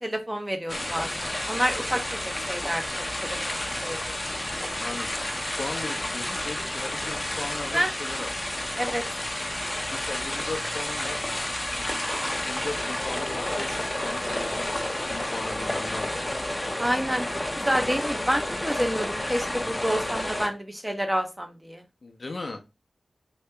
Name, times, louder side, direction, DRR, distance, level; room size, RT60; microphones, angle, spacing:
voice 1, 0.0-2.2 2.5-4.0 7.7-7.9 8.8-9.0 16.8-17.3 17.5-21.8, equal, 10° right, 5 dB, 0.7 m, -28 dB
sound 1, 0.7-20.5, left 1 dB, 20° left, 0.7 m, -30 dB
voice 2, 4.8-5.1 5.6-8.3 9.9-11.2 12.2-16.2 22.0-22.7, left 3 dB, 60° left, 5 dB, 0.6 m, -37 dB
2.9 x 2.7 x 3.3 m, 0.25 s
wide cardioid pair, 65°, 0 cm